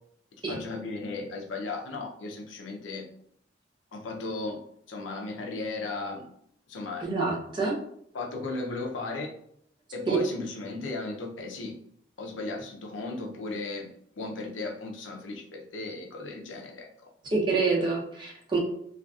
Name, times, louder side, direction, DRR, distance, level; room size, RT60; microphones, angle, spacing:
voice 1, 0.5-3.1 3.9-6.3 6.7-7.1 8.1-9.3 9.9-11.8 12.2-16.9, left 3 dB, 85° left, 2 dB, 0.5 m, -36 dB
voice 2, 7.0-7.7 10.1-10.2 17.3-18.6, right 4 dB, 25° right, -2 dB, 0.6 m, -26 dB
2.5 x 2.4 x 2.3 m, 0.69 s
head